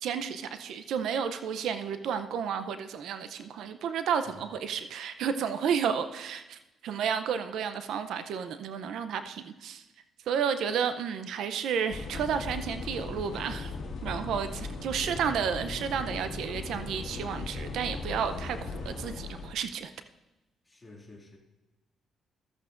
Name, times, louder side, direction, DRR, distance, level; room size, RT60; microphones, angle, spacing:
voice 1, 0.0-9.8 10.3-13.7 14.0-19.9, right 7 dB, 75° right, 10 dB, 0.5 m, -32 dB
sound 1, 11.9-19.5, left 4 dB, 65° left, 1.8 m, -38 dB
voice 2, 14.2-14.6 20.6-21.4, left 2 dB, 20° left, -1 dB, 2.3 m, -51 dB
13.5 x 8.4 x 2.5 m, 1.1 s
cardioid pair, 90°, 0 cm